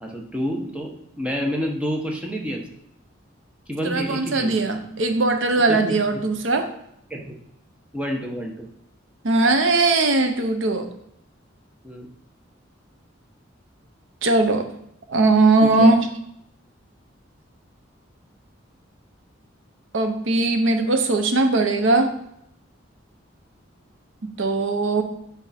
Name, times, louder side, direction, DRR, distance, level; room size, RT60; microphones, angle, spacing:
voice 1, 0.0-2.7 3.7-4.6 5.7-6.0 7.1-7.3 7.9-8.7 11.8-12.1 15.6-15.9, equal, 5° right, 0 dB, 1.0 m, -29 dB
voice 2, 3.8-6.7 9.2-10.9 14.2-14.6 15.1-16.1 19.9-22.1 24.4-25.0, right 3 dB, 75° right, 7 dB, 0.8 m, -19 dB
9.8 x 3.5 x 4.3 m, 0.76 s
head